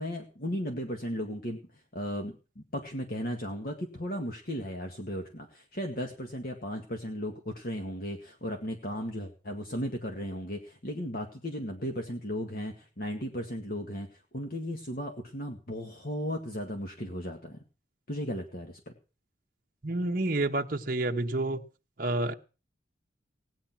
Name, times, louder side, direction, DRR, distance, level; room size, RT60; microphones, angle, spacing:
voice 1, 0.0-1.6 1.9-14.1 14.3-17.6 18.1-18.9, equal, 50° left, 3 dB, 1.9 m, -36 dB
voice 2, 19.8-21.6 22.0-22.3, right 2 dB, 45° right, 3 dB, 1.2 m, -29 dB
18.0 x 10.0 x 6.0 m, 0.35 s
head